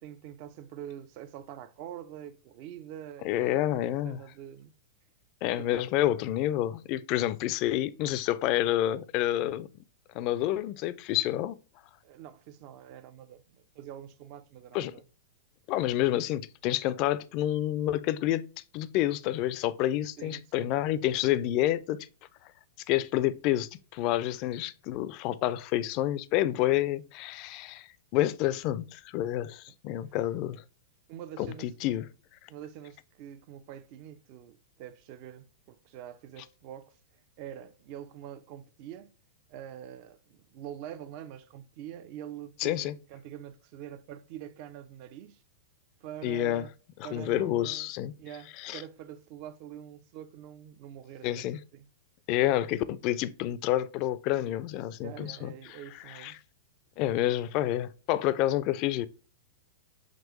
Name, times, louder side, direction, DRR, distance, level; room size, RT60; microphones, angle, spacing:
voice 1, 0.0-4.7 5.6-5.9 12.0-15.1 20.2-20.8 31.1-31.7 32.5-39.1 39.5-45.4 46.0-46.7 47.0-47.9 48.2-51.9 55.0-56.4, right 10 dB, 45° right, 0.4 m, -45 dB
voice 2, 3.2-4.2 5.4-9.7 10.1-11.6 14.7-14.9 15.7-18.5 18.7-22.1 22.9-30.6 31.4-32.0 42.6-42.9 46.2-46.7 47.0-48.1 48.6-48.8 51.2-51.6 52.3-55.8 56.1-56.3 57.0-59.1, left 13 dB, 45° left, 0.3 m, -29 dB
5.2 x 3.0 x 3.0 m
figure-of-eight pair, 100°, 0 cm